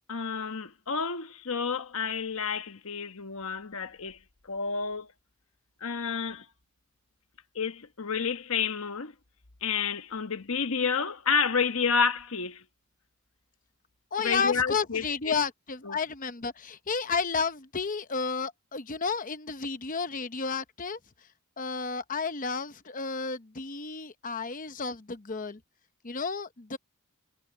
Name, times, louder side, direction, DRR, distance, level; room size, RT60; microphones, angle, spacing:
voice 1, 0.1-4.2 4.5-5.1 5.8-6.4 7.5-9.1 9.6-12.6 14.2-15.4 15.8-16.0, left 5 dB, 70° left, 1.2 m, -30 dB
voice 2, 14.1-21.0 21.6-25.6 26.0-26.8, left 5 dB, 35° left, 0.9 m, -32 dB
head